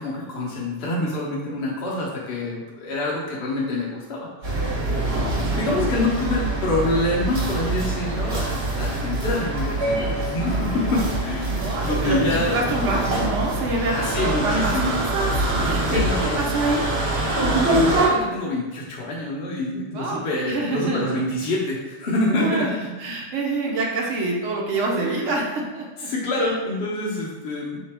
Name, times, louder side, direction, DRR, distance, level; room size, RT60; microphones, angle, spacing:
voice 1, 0.0-4.9 5.5-12.6 13.9-15.0 15.8-16.5 17.5-22.8 25.0-25.2 26.0-27.8, left 2 dB, 60° left, -5 dB, 0.9 m, -26 dB
sound 1, 4.4-18.1, right 2 dB, 60° right, 1.2 m, -24 dB
voice 2, 5.4-5.8 11.5-16.0 16.4-16.9 19.9-20.2 20.5-21.2 22.4-26.1 26.4-26.5, right 2 dB, 80° right, -1 dB, 0.9 m, -27 dB
3.7 x 2.8 x 3.3 m, 1.1 s
omnidirectional pair, 1.2 m